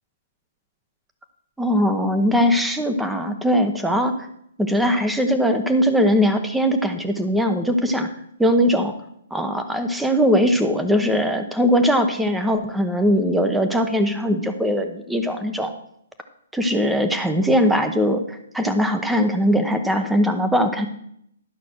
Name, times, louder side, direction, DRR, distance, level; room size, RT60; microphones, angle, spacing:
voice 1, 1.6-4.3 4.6-8.1 8.4-8.9 9.3-15.7 16.5-20.9, equal, 5° right, 7 dB, 0.8 m, -20 dB
11.5 x 5.8 x 6.3 m, 0.71 s
hypercardioid pair, 155°, 0 cm